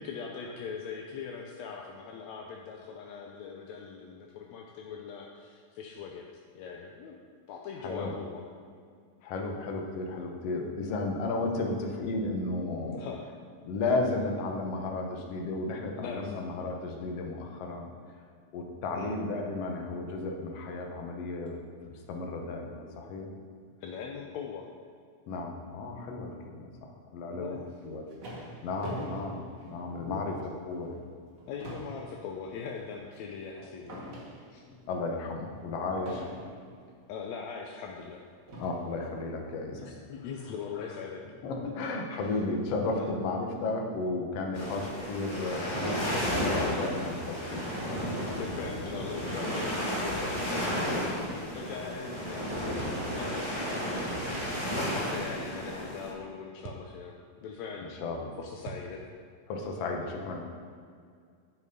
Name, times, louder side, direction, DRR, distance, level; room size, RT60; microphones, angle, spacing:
voice 1, 0.0-6.2 6.6-7.2 7.5-8.4 12.9-13.3 16.0-16.4 18.9-19.1 23.8-24.7 27.3-27.7 30.0-30.4 31.5-34.1 34.5-34.6 36.4-36.5 37.1-38.2 39.8-41.2 43.0-43.1 46.6-46.9 48.4-57.9 58.4-59.1, left 6 dB, 75° left, 0 dB, 1.6 m, -41 dB
voice 2, 7.8-8.1 9.2-13.1 13.6-17.9 18.5-23.3 25.3-27.6 27.8-28.0 28.6-30.4 30.7-31.0 34.9-36.3 38.6-39.9 40.7-40.9 41.4-47.6 52.6-53.1 58.0-58.3 59.5-60.5, left 3 dB, 60° left, 2 dB, 1.8 m, -34 dB
sound 1, 27.7-30.3 30.8-31.0 31.3-34.8 36.1-36.8 37.7-37.8 38.5-39.0, right 1 dB, 55° right, 0.9 m, -43 dB
sound 2, 44.5-56.1, equal, 35° left, 0.4 m, -33 dB
sound 3, 50.8-51.0 52.8-53.1 54.7-55.0 56.6-56.9 58.6-58.9, right 6 dB, 80° right, 2.5 m, -43 dB
11.0 x 6.1 x 5.3 m, 2.2 s
omnidirectional pair, 3.9 m